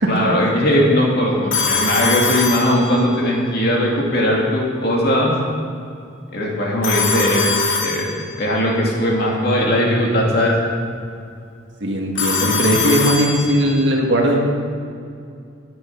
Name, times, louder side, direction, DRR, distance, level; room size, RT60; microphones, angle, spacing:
voice 1, 0.1-5.3 6.3-7.5 7.8-8.1 8.4-10.6, equal, 50° left, -3 dB, 2.6 m, -18 dB
Telephone, 1.5-3.3 6.8-8.5 12.2-13.9, left 4 dB, 75° left, 2.3 m, -22 dB
voice 2, 11.8-14.4, equal, 60° right, 0 dB, 1.9 m, -18 dB
11.0 x 9.2 x 7.2 m, 2.3 s
head